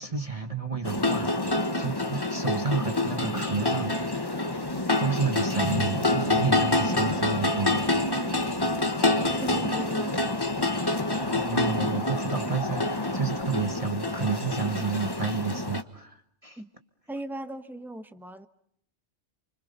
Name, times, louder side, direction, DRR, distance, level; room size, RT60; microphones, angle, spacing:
voice 1, 0.0-4.5 5.0-7.8 10.8-16.6, right 5 dB, 30° right, 1.4 m, -31 dB
sound 1, 0.8-15.8, left 2 dB, 20° left, 1.3 m, -27 dB
voice 2, 9.4-10.2 16.6-16.7 17.1-18.5, right 1 dB, ahead, 1.0 m, -37 dB
29.0 x 25.5 x 5.4 m
omnidirectional pair, 1.2 m